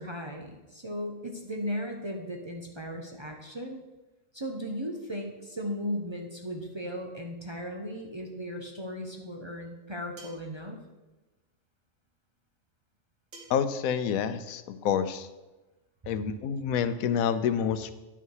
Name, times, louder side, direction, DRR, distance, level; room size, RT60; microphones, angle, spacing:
voice 1, 0.0-3.8 4.3-10.8, equal, 25° right, 1 dB, 0.7 m, -36 dB
sound 1, 10.2-10.5 13.3-13.7, right 2 dB, 70° right, 2.2 m, -49 dB
voice 2, 13.5-15.3 16.1-17.9, left 7 dB, 85° left, 12 dB, 1.0 m, -28 dB
10.5 x 5.6 x 4.8 m, 1.1 s
omnidirectional pair, 1.4 m